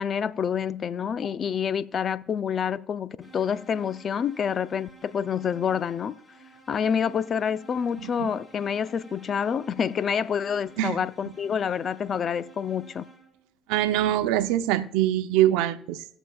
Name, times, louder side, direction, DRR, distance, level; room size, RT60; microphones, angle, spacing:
voice 1, 0.0-6.2 6.7-13.1, left 7 dB, 55° left, 0.5 m, -27 dB
sound 1, 3.2-13.6, right 3 dB, 25° left, 3.7 m, -52 dB
voice 2, 8.0-8.3 10.8-11.0 13.7-16.0, right 13 dB, 85° right, 0.6 m, -24 dB
19.0 x 6.9 x 2.3 m
supercardioid pair, 65°, 0 cm